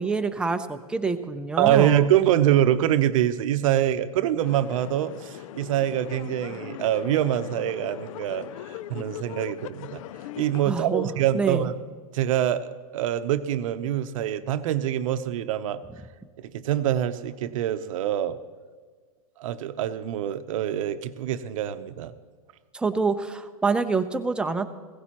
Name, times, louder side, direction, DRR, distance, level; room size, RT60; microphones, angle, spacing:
voice 1, 0.0-2.0 10.7-11.7 22.7-24.7, right 4 dB, 5° right, 7 dB, 0.6 m, -26 dB
voice 2, 1.6-10.0 10.4-11.7 12.1-15.8 16.4-18.4 19.4-22.1, right 11 dB, 60° right, 11 dB, 0.8 m, -25 dB
sound 1, 4.4-10.6, left 13 dB, 60° left, 0.4 m, -40 dB
16.5 x 16.0 x 3.0 m, 1.5 s
hypercardioid pair, 125°, 19 cm